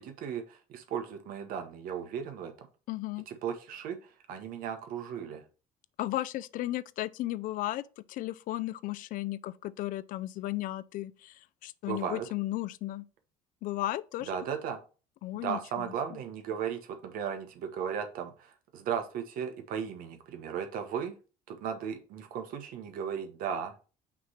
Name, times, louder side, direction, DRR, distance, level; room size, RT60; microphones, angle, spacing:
voice 1, 0.0-2.7 3.3-5.4 11.9-12.3 14.3-14.8 15.3-21.1 21.5-23.7, right 7 dB, 70° right, 1.1 m, -36 dB
voice 2, 2.9-3.2 6.0-13.1 13.6-14.3 15.2-15.9, left 15 dB, 65° left, 0.4 m, -35 dB
5.9 x 3.2 x 5.7 m
cardioid pair, 125°, 15 cm